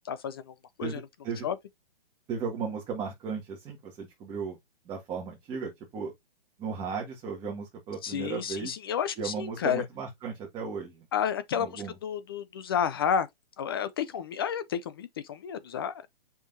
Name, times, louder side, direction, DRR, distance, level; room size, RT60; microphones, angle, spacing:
voice 1, 0.1-0.5 0.8-1.0 1.4-1.5 8.0-9.8 11.1-13.3 13.6-16.1, left 8 dB, 25° left, 0.4 m, -31 dB
voice 2, 0.8-1.5 2.3-4.6 4.8-6.1 6.6-8.7 9.2-11.1 11.5-11.9, right 5 dB, 15° right, 1.8 m, -36 dB
7.1 x 5.8 x 2.6 m
hypercardioid pair, 150°, 30 cm